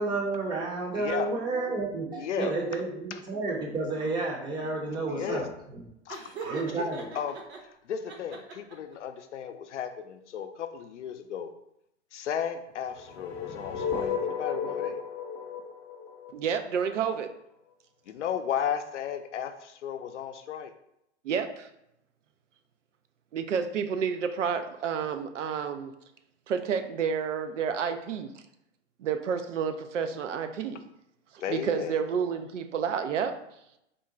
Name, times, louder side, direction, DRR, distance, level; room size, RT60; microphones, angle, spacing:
voice 1, 0.0-5.8 6.1-7.1, right 3 dB, 15° right, 0 dB, 0.5 m, -31 dB
voice 2, 0.9-1.3 2.2-2.5 5.1-5.4 6.1-6.2 6.8-6.9 7.1-11.5 12.1-15.0 18.1-20.7 31.4-31.9, left 8 dB, 75° left, 8 dB, 0.5 m, -34 dB
Laughter, 6.1-7.6 8.1-8.9, right 5 dB, 60° right, 0.9 m, -41 dB
sound 1, 12.9-17.0, left 6 dB, 35° left, 0.6 m, -34 dB
voice 3, 16.3-17.3 21.2-21.7 23.3-25.9 26.5-28.4 29.0-30.8 31.3-33.4, right 7 dB, 85° right, 8 dB, 0.5 m, -30 dB
3.7 x 2.2 x 3.7 m, 0.81 s
hypercardioid pair, 120°, 36 cm